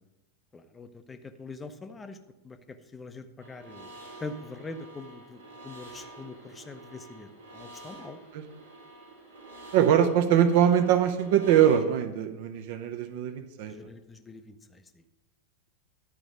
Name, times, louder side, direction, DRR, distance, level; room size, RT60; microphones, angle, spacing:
voice 1, 0.5-2.2 2.4-3.9 4.2-8.2 13.6-15.0, left 3 dB, 15° left, 9 dB, 0.6 m, -43 dB
sound 1, 3.4-11.8, right 2 dB, 65° right, 1.5 m, -48 dB
voice 2, 9.7-13.9, right 9 dB, 50° right, 9 dB, 0.7 m, -23 dB
11.0 x 5.0 x 5.0 m, 1.0 s
figure-of-eight pair, 90°, 0 cm